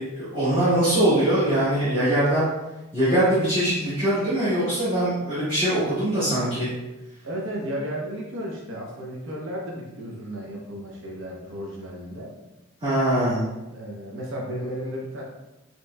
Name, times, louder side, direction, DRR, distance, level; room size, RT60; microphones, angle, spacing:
voice 1, 0.0-2.5 2.9-6.7 12.8-13.4, right 1 dB, 25° right, -12 dB, 1.3 m, -22 dB
voice 2, 7.2-12.3 13.7-15.2, equal, 70° right, -3 dB, 0.8 m, -33 dB
5.6 x 3.0 x 2.2 m, 1.0 s
head